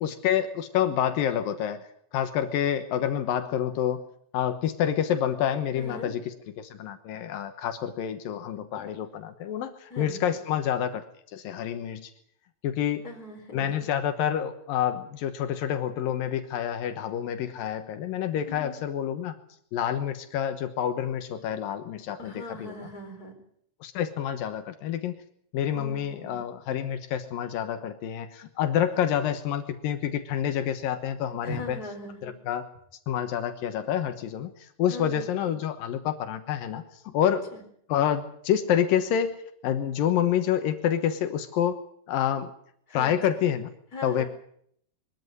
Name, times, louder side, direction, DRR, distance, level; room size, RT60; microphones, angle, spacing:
voice 1, 0.0-1.9 2.1-4.0 4.3-11.0 11.3-12.1 12.6-13.1 13.5-19.4 19.7-22.9 23.8-25.2 25.5-31.8 32.2-32.7 33.1-37.5 37.9-39.4 39.6-41.8 42.1-42.5 42.9-43.7 44.0-44.3, left 9 dB, 85° left, 8 dB, 3.0 m, -28 dB
voice 2, 5.7-6.1 9.9-10.3 13.0-13.9 18.5-18.7 22.2-23.4 25.7-26.4 31.4-32.3 34.9-35.6 37.5-37.6 42.9-43.2 43.9-44.3, left 1 dB, 25° left, 3 dB, 4.6 m, -40 dB
22.5 x 13.5 x 9.6 m, 0.68 s
omnidirectional pair, 3.9 m